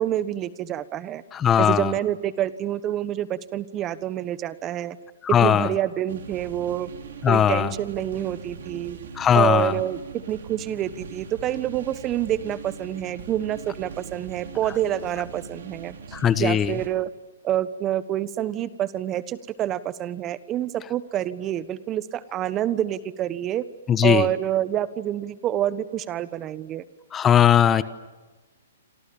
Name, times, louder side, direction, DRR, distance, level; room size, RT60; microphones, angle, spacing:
voice 1, 0.0-1.2 1.6-5.0 5.4-6.9 7.3-9.0 9.3-16.0 16.4-17.1 17.4-23.6 24.0-26.8, right 12 dB, 25° right, 16 dB, 1.2 m, -27 dB
voice 2, 1.3-1.9 5.2-5.7 7.2-7.7 9.2-9.7 16.1-16.7 23.9-24.3 27.1-27.8, left 9 dB, 20° left, 15 dB, 1.1 m, -19 dB
sound 1, 6.1-16.9, right 5 dB, 65° right, 5.2 m, -41 dB
28.5 x 27.5 x 7.1 m, 1.2 s
hypercardioid pair, 140°, 0 cm